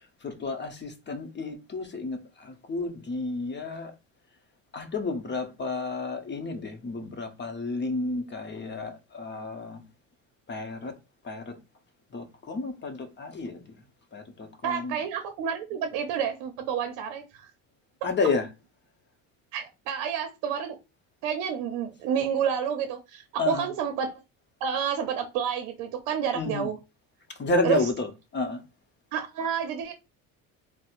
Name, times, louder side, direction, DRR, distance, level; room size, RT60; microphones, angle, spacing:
voice 1, 0.2-3.9 4.7-9.8 10.5-10.9 11.2-11.5 12.1-13.6 14.1-15.0 18.0-18.5 23.4-23.7 26.3-26.7 27.4-28.6, left 3 dB, 30° left, 0.9 m, -31 dB
voice 2, 14.6-17.5 19.5-20.8 21.2-24.1 24.6-26.8 27.6-27.9 29.1-29.9, right 7 dB, 70° right, 0.7 m, -29 dB
4.1 x 2.1 x 2.5 m
hypercardioid pair, 75°, 38 cm